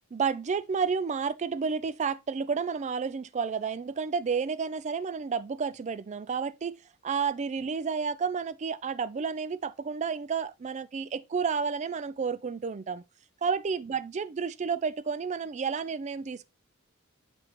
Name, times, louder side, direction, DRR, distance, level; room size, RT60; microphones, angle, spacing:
voice 1, 0.1-13.0 13.4-16.5, right 5 dB, 35° right, 0.4 m, -31 dB
6.9 x 5.0 x 3.2 m
head